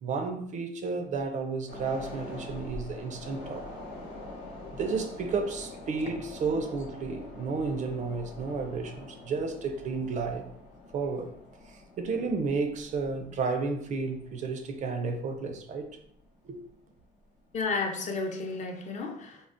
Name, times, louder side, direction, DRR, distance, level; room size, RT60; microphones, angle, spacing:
voice 1, 0.0-3.7 4.7-10.5 10.9-11.4 11.7-15.9 16.4-16.6, right 4 dB, 45° right, 0.4 m, -32 dB
sound 1, 1.7-16.2 16.6-16.7, left 2 dB, 85° left, 1.0 m, -45 dB
voice 2, 17.5-19.5, left 3 dB, 45° left, 0.5 m, -32 dB
3.5 x 2.0 x 2.5 m
cardioid pair, 110°, 17 cm